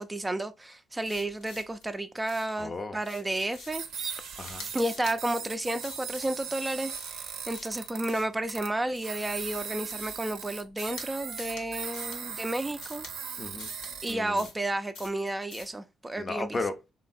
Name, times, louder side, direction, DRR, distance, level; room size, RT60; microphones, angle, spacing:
voice 1, 0.0-4.1 4.7-13.1 14.0-16.6, right 1 dB, 20° right, 0.4 m, -32 dB
sound 1, 1.0-1.8 2.3-2.6 3.0-3.9 4.3-5.2 5.8-6.4 6.9-8.4 8.9-10.3 10.8-11.1 11.3-11.7 11.9-12.2 12.8-13.1 13.6-13.9 14.4-14.6 14.9-15.2 15.5-15.7, left 4 dB, 75° left, 0.8 m, -47 dB
voice 2, 2.6-3.0 4.4-4.7 13.4-13.7 14.1-14.5 16.2-16.9, left 3 dB, 40° left, 0.6 m, -35 dB
sound 2, 3.7-8.1 8.5-8.7 9.0-14.1, right 7 dB, 70° right, 0.6 m, -39 dB
3.3 x 2.5 x 3.9 m
hypercardioid pair, 45°, 0 cm